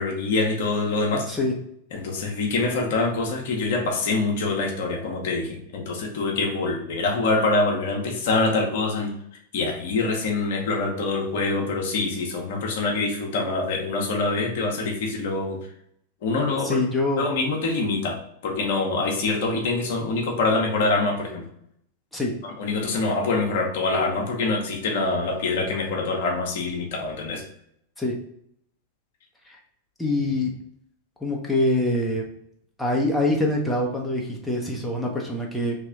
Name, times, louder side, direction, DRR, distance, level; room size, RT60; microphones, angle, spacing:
voice 1, 0.0-1.3 1.9-9.1 9.5-15.6 16.2-16.8 17.2-18.2 18.4-21.4 22.4-27.4, left 3 dB, 55° left, 1 dB, 0.8 m, -25 dB
voice 2, 16.6-17.2 22.1-22.3 28.0-28.1 29.5-29.6 30.0-30.5 31.2-32.2 32.8-35.8, left 2 dB, 5° left, -2 dB, 0.7 m, -24 dB
3.2 x 2.9 x 3.6 m, 0.72 s
figure-of-eight pair, 90°, 0 cm